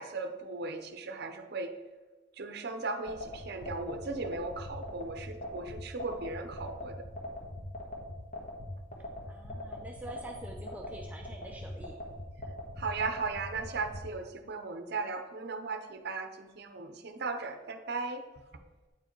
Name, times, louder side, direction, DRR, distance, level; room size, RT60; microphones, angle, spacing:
voice 1, 0.0-1.7 2.4-7.0 12.8-18.2, right 3 dB, 60° right, 7 dB, 0.7 m, -37 dB
sound 1, 3.1-14.0, left 1 dB, 40° left, 1.5 m, -41 dB
voice 2, 9.3-12.0, right 2 dB, 10° right, 0 dB, 0.6 m, -46 dB
8.8 x 4.7 x 4.5 m, 1.2 s
head